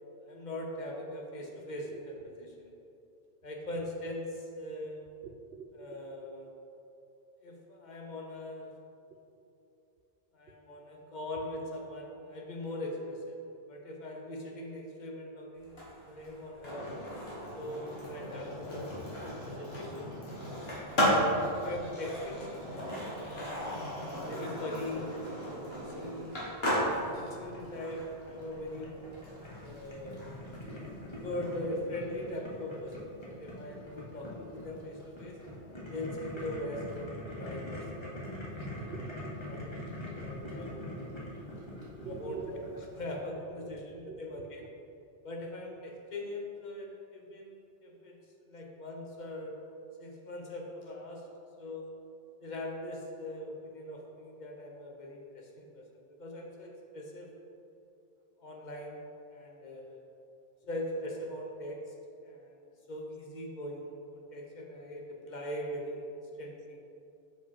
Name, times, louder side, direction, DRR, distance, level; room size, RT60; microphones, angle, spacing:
voice 1, 0.2-2.7 3.4-5.0 5.8-6.6 7.4-8.7 10.3-13.4 13.7-15.8 16.1-16.9 17.6-19.0 19.4-20.2 21.1-23.8 24.3-26.3 26.8-28.9 29.6-30.2 31.2-35.4 35.9-38.4 39.4-39.6 40.2-41.1 42.0-42.6 43.0-44.6 45.2-48.2 48.5-49.5 50.0-51.3 51.6-51.9 52.4-55.8 56.2-57.3 58.4-60.0 60.7-61.9 62.2-62.6 62.9-66.1 66.4-66.8, left 1 dB, 50° left, 0 dB, 0.8 m, -41 dB
voice 2, 5.2-6.0 38.1-39.4 39.7-39.9 41.8-42.6 44.1-44.2, right 5 dB, 80° right, 5 dB, 0.8 m, -46 dB
Skateboard, 15.6-31.5, equal, 75° left, 1.8 m, -35 dB
Boiling, 25.1-43.1, left 1 dB, 30° left, 1.1 m, -44 dB
5.6 x 5.1 x 4.2 m, 2.7 s
omnidirectional pair, 1.1 m